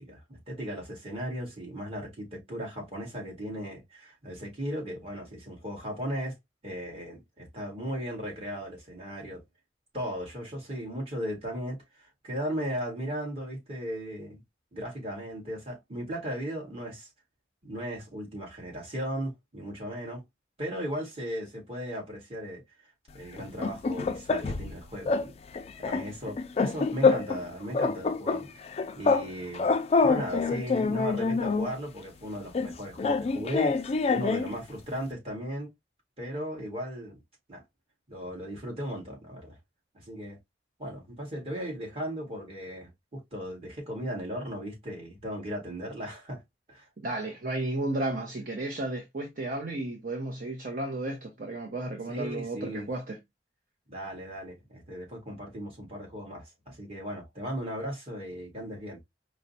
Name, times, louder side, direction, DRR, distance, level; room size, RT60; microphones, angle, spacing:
voice 1, 0.0-6.4 6.6-9.4 9.9-14.4 14.7-17.1 17.6-20.2 20.6-22.6 23.1-25.4 25.8-28.6 28.9-29.7 30.0-35.7 36.2-37.2 37.5-37.6 38.1-39.6 39.9-40.4 40.8-46.4 46.7-46.9 52.1-52.9 53.9-59.0, equal, 35° right, 1.7 m, -36 dB
sound 1, 23.4-24.7 25.1-25.3 25.5-27.4 27.7-29.3 29.5-31.7 32.5-34.5, left 4 dB, 35° left, 0.3 m, -26 dB
voice 2, 47.0-53.2, right 2 dB, 50° right, 0.7 m, -33 dB
4.8 x 2.1 x 2.7 m
head